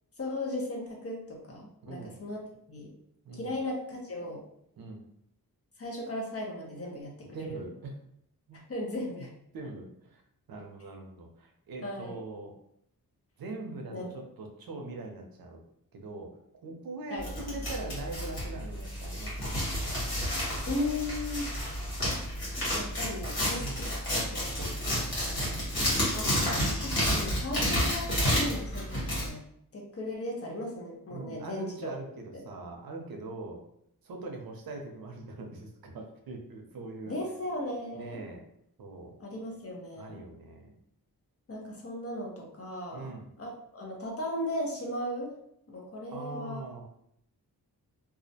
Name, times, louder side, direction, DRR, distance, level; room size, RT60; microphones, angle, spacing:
voice 1, 0.2-2.4 2.7-2.9 3.3-4.4 5.8-7.6 8.7-9.3 11.8-12.2 13.9-14.1 17.1-17.3 20.7-21.5 22.6-23.9 24.3-24.4 25.5-25.6 26.1-26.4 26.8-29.4 29.7-31.9 37.1-38.2 39.2-40.2 41.5-43.1 43.4-45.3 45.7-46.6, left 1 dB, 40° left, -1 dB, 0.6 m, -36 dB
voice 2, 1.8-2.2 3.2-3.5 4.8-5.0 7.3-7.9 8.5-8.6 9.5-10.2 10.5-12.5 13.4-15.6 15.9-16.3 16.6-19.3 23.6-23.8 24.6-26.0 31.1-33.6 34.0-37.2 37.9-38.4 38.8-39.2 40.0-40.7 42.9-43.3 46.1-46.8, right 2 dB, 70° right, 2 dB, 0.5 m, -42 dB
sound 1, 17.2-29.3, equal, 85° left, 1.1 m, -30 dB
2.4 x 2.0 x 2.6 m, 0.73 s
wide cardioid pair, 120°, 37 cm